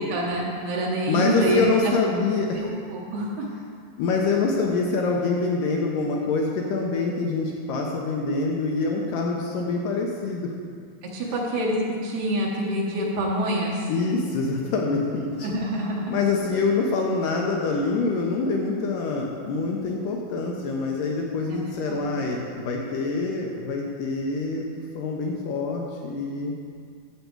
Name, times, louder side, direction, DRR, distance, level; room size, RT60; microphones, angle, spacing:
voice 1, 0.0-1.9 2.5-3.5 11.1-13.8 15.4-16.1 21.5-21.6 21.9-22.1, right 1 dB, 70° right, -3 dB, 2.9 m, -26 dB
voice 2, 1.1-2.6 4.0-10.5 13.9-15.5 16.1-24.6 25.0-26.5, left 3 dB, 80° left, 0 dB, 1.9 m, -25 dB
12.0 x 8.2 x 4.6 m, 2.2 s
omnidirectional pair, 5.0 m